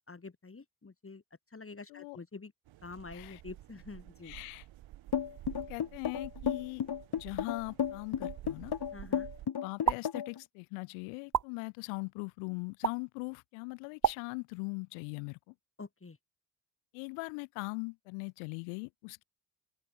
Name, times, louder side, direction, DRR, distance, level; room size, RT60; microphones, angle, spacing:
voice 1, 0.1-1.2 1.5-2.5 2.8-4.3 8.9-9.3 15.8-16.2, left 4 dB, 25° left, 3.9 m, -47 dB
sound 1, 2.7-9.5, right 14 dB, 65° right, 3.2 m, -50 dB
voice 2, 3.1-3.4 4.2-4.7 5.7-6.8 7.2-8.7 9.6-15.5 16.9-19.2, left 37 dB, 75° left, 2.1 m, -40 dB
sound 2, 5.1-10.4, left 8 dB, 50° left, 4.0 m, -33 dB
sound 3, 9.8-10.0 11.3-11.5 12.8-13.0 14.0-14.2, right 8 dB, 35° right, 1.4 m, -27 dB
open air
hypercardioid pair, 45°, 49 cm